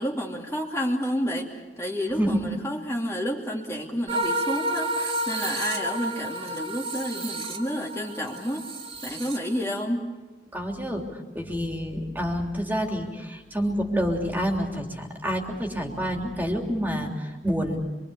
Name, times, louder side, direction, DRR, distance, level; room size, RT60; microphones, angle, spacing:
voice 1, 0.0-8.7 9.0-10.0, equal, 15° left, -1 dB, 2.6 m, -30 dB
voice 2, 2.2-2.5 10.5-11.0 11.3-17.8, equal, 10° right, 1 dB, 3.2 m, -28 dB
sound 1, 4.1-9.8, right 2 dB, 35° right, 2.6 m, -31 dB
26.5 x 24.5 x 7.0 m, 1.2 s
head